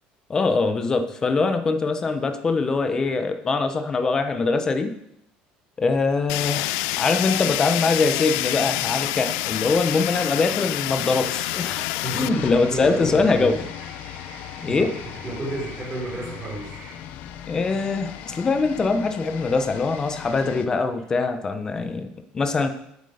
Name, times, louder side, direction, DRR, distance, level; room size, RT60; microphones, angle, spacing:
voice 1, 0.3-4.9 5.8-11.9 12.1-13.6 14.6-14.9 17.5-22.7, left 4 dB, 20° left, 8 dB, 0.9 m, -23 dB
Fire, 6.3-12.3, left 19 dB, 90° left, 0.3 m, -27 dB
sound 1, 6.9-17.0, right 5 dB, 55° right, 1.8 m, -46 dB
sound 2, 11.7-20.7, left 10 dB, 60° left, 0.9 m, -38 dB
voice 2, 12.0-13.5 14.7-14.8 15.2-16.7, right 2 dB, 20° right, -4 dB, 5.4 m, -31 dB
11.0 x 8.3 x 5.0 m, 0.77 s
cardioid pair, 150°, 3 cm